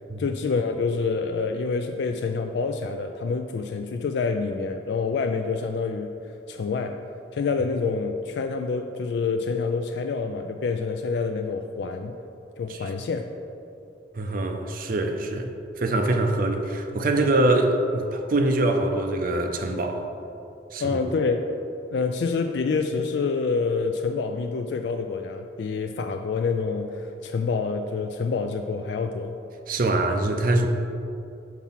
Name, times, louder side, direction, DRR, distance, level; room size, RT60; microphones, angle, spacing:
voice 1, 0.2-7.0 7.3-12.2 12.6-13.2 20.8-21.5 21.9-29.3, left 4 dB, 65° left, 5 dB, 0.3 m, -27 dB
voice 2, 14.1-15.5 15.8-20.0 20.7-21.0 29.7-30.7, right 2 dB, 50° right, 5 dB, 0.5 m, -24 dB
5.8 x 4.6 x 5.6 m, 2.7 s
head